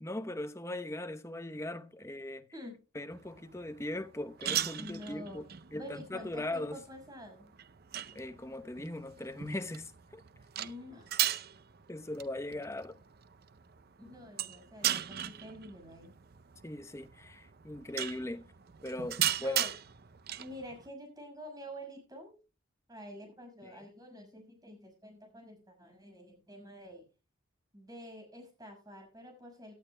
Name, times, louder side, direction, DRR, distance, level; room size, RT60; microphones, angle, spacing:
voice 1, 0.0-2.4 2.9-5.4 5.7-6.8 8.1-10.2 11.9-13.0 16.6-18.5 18.8-19.6 23.6-23.8, left 1 dB, 15° left, 0.8 m, -39 dB
sound 1, 3.1-20.9, right 11 dB, 50° right, 0.6 m, -38 dB
voice 2, 4.8-5.4 5.7-7.5 10.6-11.1 14.0-16.1 19.4-19.7 20.4-22.3 22.9-27.0 27.7-29.7, equal, 20° right, 5.8 m, -48 dB
17.5 x 11.5 x 2.2 m
head